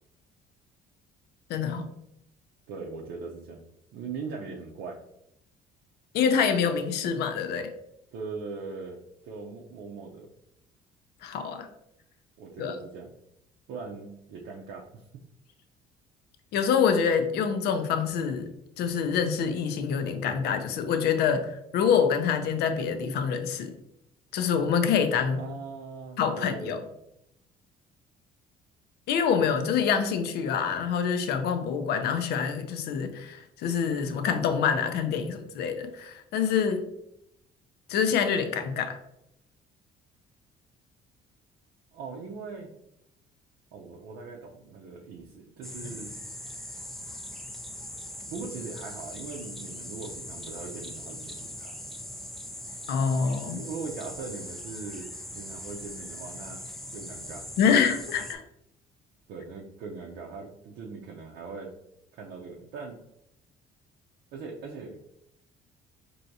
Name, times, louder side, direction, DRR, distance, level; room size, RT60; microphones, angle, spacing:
voice 1, 1.5-1.9 6.1-7.7 11.2-11.7 12.6-12.8 16.5-18.5 18.8-23.7 24.3-25.4 26.2-26.8 29.1-36.8 37.9-39.0 52.9-53.6 57.6-58.4, left 7 dB, 75° left, 8 dB, 0.5 m, -26 dB
voice 2, 2.7-3.6 3.9-5.0 8.1-10.3 12.4-13.1 13.7-15.1 25.4-26.8 41.9-42.7 43.7-46.2 48.3-51.8 53.5-55.1 55.3-56.6 56.9-57.5 59.3-61.8 62.1-63.0 64.3-65.0, right 4 dB, 80° right, -1 dB, 0.6 m, -40 dB
sound 1, 45.6-58.3, left 1 dB, ahead, 0.4 m, -41 dB
4.5 x 2.7 x 2.7 m, 0.79 s
cardioid pair, 110°, 17 cm